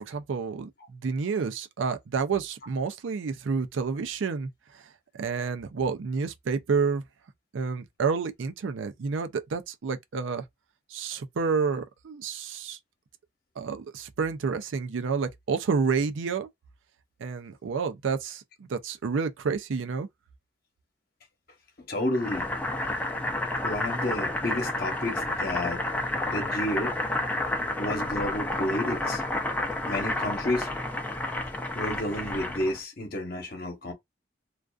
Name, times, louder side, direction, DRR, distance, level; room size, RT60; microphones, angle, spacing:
voice 1, 0.1-4.5 5.1-7.0 7.5-10.4 10.9-12.8 13.6-16.5 17.2-20.1, right 5 dB, 80° right, 0.4 m, -29 dB
voice 2, 21.9-22.5 23.6-25.8 26.3-26.9 27.8-29.2 29.8-30.7 31.7-33.9, left 1 dB, 50° left, 0.9 m, -30 dB
Boiling, 22.1-32.8, left 2 dB, 10° left, 0.4 m, -30 dB
2.4 x 2.3 x 2.3 m
head